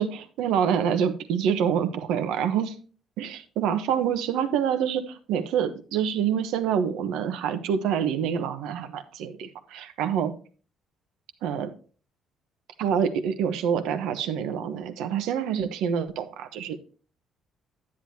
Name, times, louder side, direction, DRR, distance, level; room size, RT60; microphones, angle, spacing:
voice 1, 0.0-2.7 3.2-10.3 11.4-11.7 12.8-16.9, right 8 dB, 90° right, 9 dB, 1.2 m, -26 dB
10.0 x 9.7 x 2.8 m, 0.38 s
cardioid pair, 110°, 0 cm